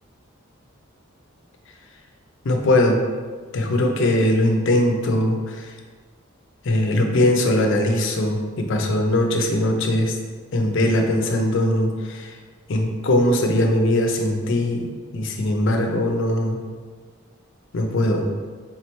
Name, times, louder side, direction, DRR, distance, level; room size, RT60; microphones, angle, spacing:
voice 1, 2.4-3.0 3.5-5.7 6.6-10.2 10.5-12.3 12.7-14.9 15.1-16.6 17.7-18.3, left 1 dB, 60° left, 3 dB, 0.5 m, -20 dB
3.6 x 3.2 x 2.9 m, 1.5 s
head